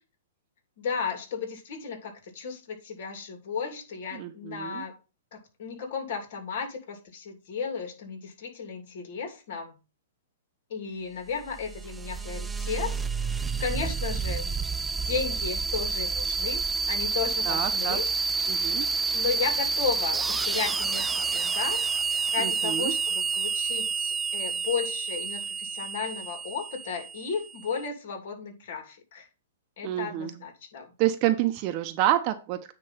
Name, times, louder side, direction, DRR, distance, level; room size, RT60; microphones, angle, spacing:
voice 1, 0.8-5.0 5.3-9.7 10.7-12.9 13.3-14.5 15.0-18.8 19.1-22.0 22.3-29.3 29.8-30.9, left 6 dB, 60° left, 4 dB, 2.7 m, -34 dB
voice 2, 4.1-4.8 17.5-18.0 18.5-18.9 22.4-22.9 29.8-30.4 31.0-32.7, right 13 dB, 40° right, 7 dB, 0.8 m, -28 dB
sound 1, 11.3-27.7, right 4 dB, 10° right, 0.3 m, -29 dB
9.4 x 3.2 x 5.7 m, 0.31 s
hypercardioid pair, 130°, 0 cm